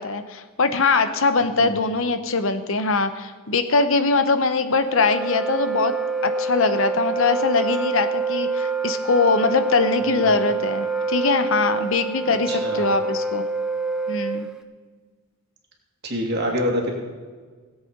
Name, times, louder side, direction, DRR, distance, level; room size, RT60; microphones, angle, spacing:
voice 1, 0.0-5.9 6.2-13.5 14.1-14.5, left 4 dB, 60° left, 10 dB, 0.8 m, -22 dB
Wind instrument woodwind instrument, 4.7-14.6, right 3 dB, 5° right, 0.5 m, -26 dB
voice 2, 10.0-10.4 12.5-13.0 16.0-16.9, equal, 50° right, 0 dB, 2.5 m, -26 dB
17.5 x 8.2 x 5.2 m, 1.5 s
head